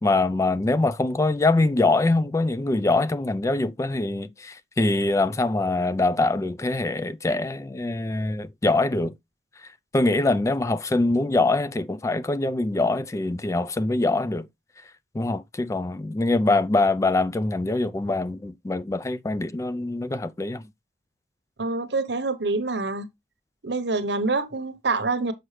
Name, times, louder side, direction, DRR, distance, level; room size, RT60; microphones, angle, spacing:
voice 1, 0.0-9.1 9.9-14.5 15.1-20.6, left 2 dB, 15° left, 0.3 m, -23 dB
voice 2, 21.6-23.1 23.6-25.3, right 3 dB, 80° right, 1.0 m, -26 dB
6.5 x 6.1 x 3.2 m
head